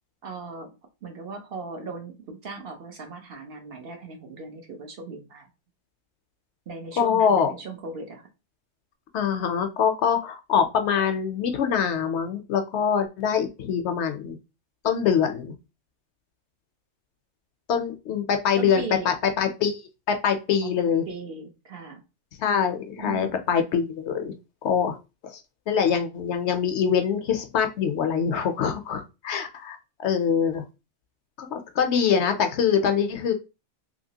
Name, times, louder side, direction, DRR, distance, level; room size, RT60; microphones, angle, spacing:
voice 1, 0.2-5.5 6.7-8.3 18.6-19.1 20.6-22.0 23.0-23.4, right 4 dB, 55° right, 4 dB, 0.8 m, -38 dB
voice 2, 7.0-7.5 9.1-14.4 14.8-15.5 17.7-19.8 20.1-21.1 22.4-24.3 24.6-25.0 25.3-25.4 25.7-30.6 31.4-33.3, left 7 dB, 70° left, 6 dB, 0.8 m, -24 dB
2.8 x 2.7 x 2.7 m, 0.27 s
omnidirectional pair, 1.3 m